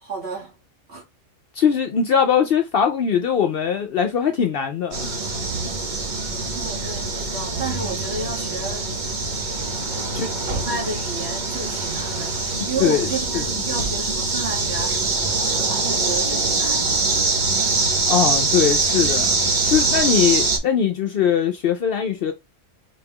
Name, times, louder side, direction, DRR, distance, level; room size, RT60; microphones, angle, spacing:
voice 1, 0.0-0.5 0.9-1.0 6.5-8.9 9.9-17.0, right 3 dB, 60° right, 1.8 m, -32 dB
voice 2, 1.5-5.1 10.1-10.3 12.6-13.4 18.1-22.3, left 7 dB, 60° left, 0.6 m, -21 dB
sound 1, 4.9-20.6, right 3 dB, 40° right, 0.9 m, -23 dB
4.1 x 2.2 x 3.5 m
omnidirectional pair, 1.3 m